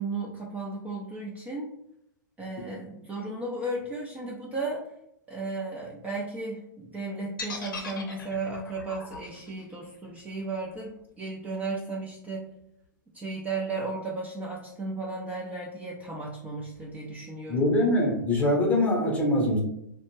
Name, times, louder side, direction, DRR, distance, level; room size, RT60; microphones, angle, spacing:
voice 1, 0.0-1.7 2.4-4.8 5.3-12.5 13.1-17.7, right 3 dB, 15° right, -4 dB, 0.5 m, -35 dB
sound 1, 7.4-11.4, left 4 dB, 80° left, 0.7 m, -40 dB
voice 2, 17.5-19.6, left 1 dB, 15° left, -1 dB, 0.9 m, -23 dB
2.5 x 2.1 x 3.1 m, 0.78 s
hypercardioid pair, 110°, 11 cm